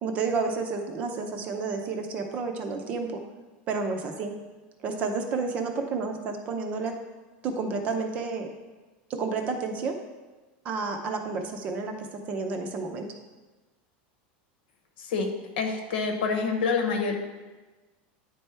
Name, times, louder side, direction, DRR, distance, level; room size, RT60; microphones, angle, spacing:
voice 1, 0.0-3.2 3.7-4.3 4.8-6.9 7.4-8.5 9.1-10.0 10.6-13.1, right 4 dB, 25° right, 4 dB, 0.6 m, -30 dB
voice 2, 15.0-17.2, left 4 dB, 85° left, 4 dB, 1.0 m, -27 dB
9.7 x 3.4 x 4.3 m, 1.2 s
supercardioid pair, 180°, 5 cm